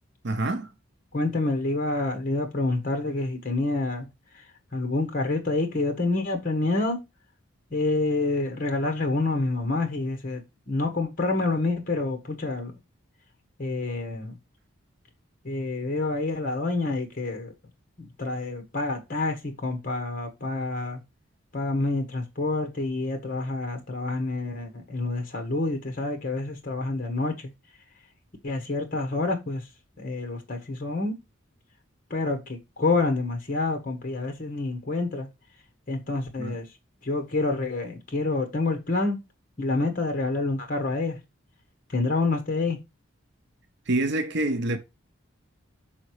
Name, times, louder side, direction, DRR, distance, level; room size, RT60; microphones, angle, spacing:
voice 1, 0.2-0.7 36.4-36.6 43.9-44.8, right 2 dB, 55° right, 0.7 m, -26 dB
voice 2, 1.1-4.1 4.7-7.0 7.7-10.4 10.7-12.7 13.6-14.4 15.4-17.5 18.0-21.0 21.5-27.3 28.4-29.6 30.0-31.1 32.1-35.3 35.9-36.7 37.0-39.2 39.6-41.2 41.9-42.8, left 2 dB, 40° left, 1.3 m, -27 dB
6.4 x 4.1 x 4.7 m
head